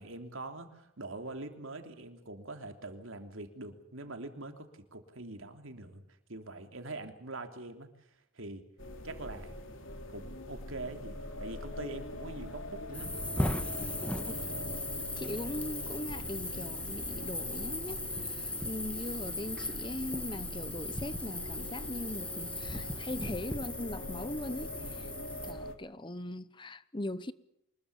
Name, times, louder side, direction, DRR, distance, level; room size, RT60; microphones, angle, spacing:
voice 1, 0.0-6.0 6.3-8.1 8.3-8.6 9.0-9.6 10.1-13.1, right 2 dB, 75° right, 3.3 m, -43 dB
sound 1, 8.8-25.8, left 1 dB, 70° left, 3.5 m, -44 dB
sound 2, 12.9-25.5, left 1 dB, 5° left, 1.7 m, -38 dB
voice 2, 15.2-25.1 25.4-27.3, left 1 dB, 25° left, 0.8 m, -40 dB
25.5 x 21.5 x 7.0 m
head